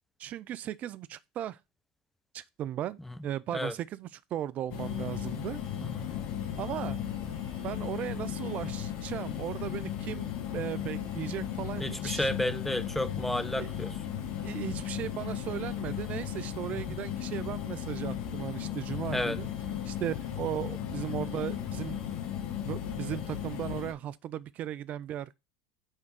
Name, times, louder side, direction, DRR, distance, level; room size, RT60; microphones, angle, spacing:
voice 1, 0.2-1.6 2.3-5.6 6.6-7.0 7.6-12.3 13.6-13.7 14.4-19.5 19.9-22.0 22.6-25.3, right 11 dB, 45° right, 0.4 m, -37 dB
sound 1, 4.7-23.9, left 10 dB, 60° left, 1.5 m, -36 dB
voice 2, 5.8-6.1 11.8-14.0 16.9-17.0 19.1-19.4, left 1 dB, 5° left, 0.8 m, -32 dB
6.4 x 3.6 x 4.7 m
hypercardioid pair, 90°, 3 cm